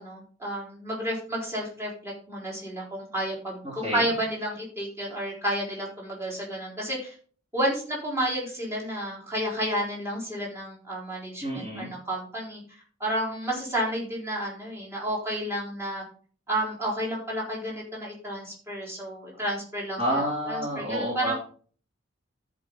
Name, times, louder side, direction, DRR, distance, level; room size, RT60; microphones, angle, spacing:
voice 1, 0.0-7.2 7.5-12.6 13.0-16.0 16.5-20.0 20.5-21.3, right 1 dB, 15° right, -4 dB, 3.8 m, -31 dB
voice 2, 3.6-4.1 11.4-11.9 20.0-21.3, equal, 30° right, -4 dB, 3.3 m, -29 dB
13.5 x 5.3 x 3.9 m, 0.42 s
head